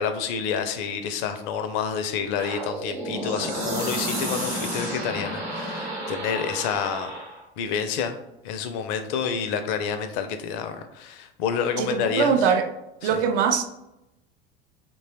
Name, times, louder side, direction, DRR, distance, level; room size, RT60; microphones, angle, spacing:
voice 1, 0.0-7.1 7.6-8.2 8.4-12.4 13.0-13.1, left 7 dB, 50° left, 8 dB, 0.4 m, -28 dB
sound 1, 2.4-7.4, right 1 dB, 90° right, 0.9 m, -31 dB
voice 2, 11.8-12.7 13.0-13.6, right 7 dB, 55° right, 7 dB, 0.4 m, -22 dB
2.9 x 2.2 x 2.8 m, 0.88 s
figure-of-eight pair, 75°, 31 cm